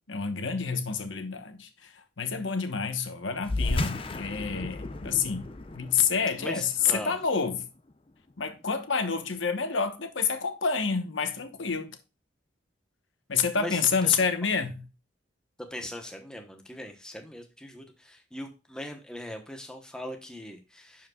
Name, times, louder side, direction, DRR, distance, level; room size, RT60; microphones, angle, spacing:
voice 1, 0.1-5.5 5.7-7.7 8.4-12.0 13.3-14.8, left 6 dB, 90° left, 1.1 m, -28 dB
sound 1, 3.4-8.3, left 2 dB, 30° left, 0.6 m, -34 dB
voice 2, 6.4-7.1 13.6-14.2 15.7-21.1, left 1 dB, 5° left, 1.0 m, -40 dB
11.0 x 5.0 x 2.4 m
head